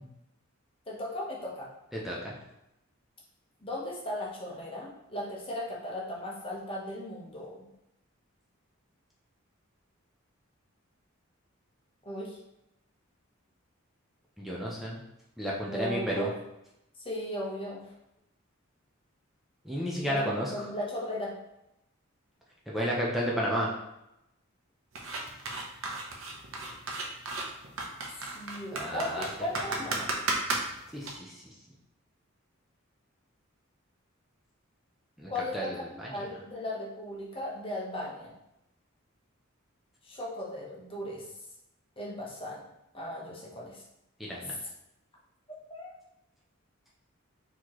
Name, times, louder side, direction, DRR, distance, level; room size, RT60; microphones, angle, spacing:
voice 1, 0.9-1.7 3.6-7.7 12.0-12.4 15.7-16.3 17.0-17.8 20.0-21.4 28.2-30.0 35.3-38.3 40.0-41.3 42.0-42.6 42.9-43.8 45.7-45.9, left 1 dB, 25° left, -4 dB, 1.0 m, -37 dB
voice 2, 1.9-2.3 14.4-15.0 15.4-16.3 19.6-20.7 22.7-23.7 28.7-29.3 29.7-30.1 30.9-31.4 35.2-36.2 44.2-44.6, equal, ahead, -5 dB, 0.5 m, -32 dB
sound 1, 25.0-31.1, right 3 dB, 70° right, 0.7 m, -34 dB
4.1 x 3.0 x 3.0 m, 0.86 s
head